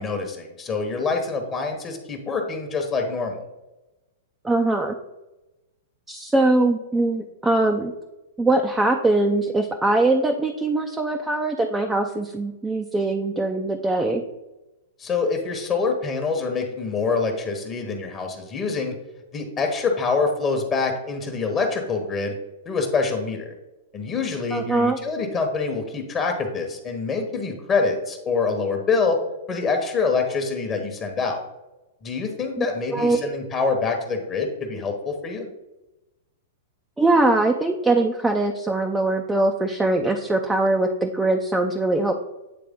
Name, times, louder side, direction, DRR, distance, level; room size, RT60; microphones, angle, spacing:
voice 1, 0.0-3.5 15.0-18.9 19.3-22.3 22.6-23.5 23.9-29.2 29.5-31.4 32.0-35.5, left 4 dB, 25° left, 3 dB, 1.0 m, -25 dB
voice 2, 4.4-5.0 6.1-7.9 8.4-14.2 24.5-25.0 32.6-32.7 32.9-33.3 37.0-42.1, right 2 dB, 10° right, 3 dB, 0.5 m, -22 dB
8.7 x 3.3 x 3.6 m, 1.0 s
hypercardioid pair, 115°, 0 cm